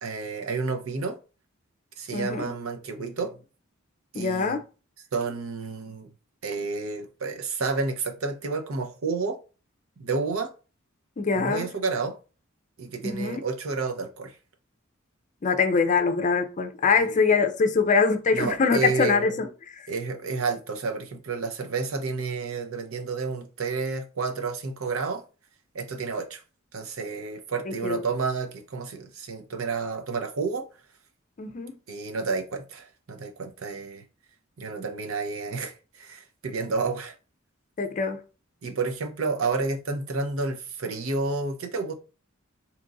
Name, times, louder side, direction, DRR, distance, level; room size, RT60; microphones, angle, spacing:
voice 1, 0.0-1.2 2.0-3.4 4.1-4.6 5.1-6.1 6.4-9.4 10.0-10.5 11.3-12.2 12.8-14.4 16.9-17.4 18.3-19.3 19.9-25.2 25.7-26.4 26.7-30.7 31.9-34.0 34.6-37.1 38.6-41.9, right 4 dB, 85° right, 0.7 m, -30 dB
voice 2, 2.1-2.5 4.1-4.6 11.2-11.7 13.0-13.4 15.4-19.9 27.7-28.0 31.4-31.8 37.8-38.2, left 5 dB, 35° left, 0.5 m, -24 dB
3.0 x 2.4 x 3.9 m
head